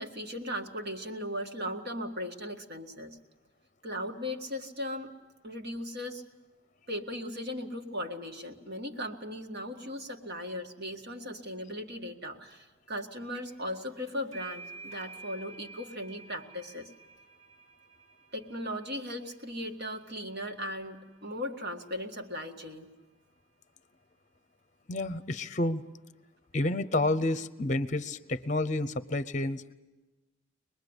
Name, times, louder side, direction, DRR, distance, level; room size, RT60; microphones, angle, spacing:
voice 1, 0.0-3.2 3.8-5.1 5.4-6.2 6.9-16.9 18.3-22.9, equal, 50° right, 3 dB, 1.9 m, -37 dB
sound 1, 13.3-13.7 13.9-21.2, right 3 dB, 85° right, 6.7 m, -51 dB
voice 2, 24.9-25.8 26.5-29.7, left 2 dB, 35° left, 13 dB, 0.7 m, -30 dB
24.5 x 20.5 x 8.1 m, 1.1 s
head